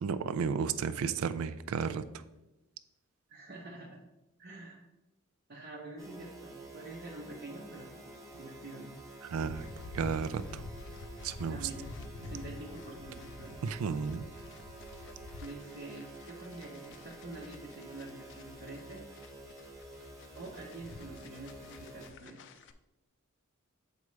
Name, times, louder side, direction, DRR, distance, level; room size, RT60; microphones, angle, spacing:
voice 1, 0.0-2.0 9.2-9.7 9.9-10.6 11.2-11.7 13.6-14.3, right 6 dB, 75° right, 14 dB, 0.4 m, -33 dB
voice 2, 3.3-4.0 4.4-4.8 5.5-7.9 8.3-9.0 11.5-13.6 13.9-14.0 15.4-19.0 20.3-22.6, right 2 dB, 50° right, -3 dB, 0.7 m, -46 dB
sound 1, 6.0-22.1, right 2 dB, 15° right, 0.9 m, -50 dB
sound 2, 9.3-22.7, left 3 dB, 60° left, 0.4 m, -48 dB
7.0 x 4.7 x 3.1 m, 0.98 s
head